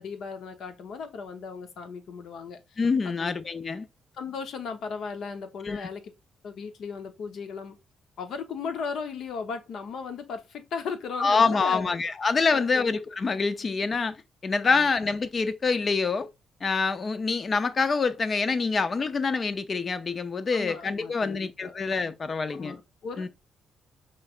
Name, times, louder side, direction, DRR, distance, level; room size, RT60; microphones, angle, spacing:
voice 1, 0.0-3.3 4.2-6.1 6.4-7.8 8.2-11.9 12.5-12.9 14.7-14.9 20.5-21.7 22.5-23.3, left 5 dB, 70° left, 0.9 m, -36 dB
voice 2, 2.8-3.9 5.6-5.9 11.2-14.2 14.4-16.3 16.6-22.8 23.2-23.3, left 4 dB, 40° left, 0.5 m, -26 dB
5.7 x 3.2 x 2.4 m
cardioid pair, 90°, 0 cm